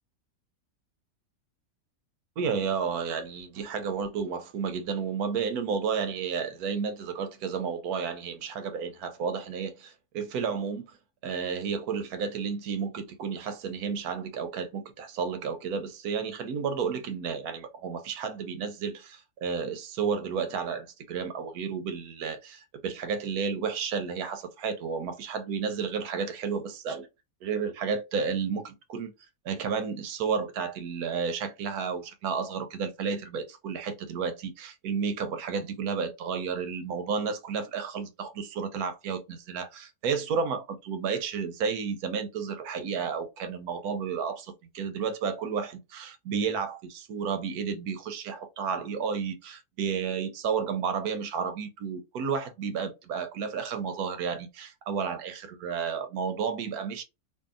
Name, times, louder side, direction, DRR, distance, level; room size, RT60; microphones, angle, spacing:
voice 1, 2.4-10.9 11.2-27.1 27.4-29.1 29.4-57.0, right 6 dB, 90° right, 1.1 m, -32 dB
2.7 x 2.6 x 2.4 m
omnidirectional pair, 1.5 m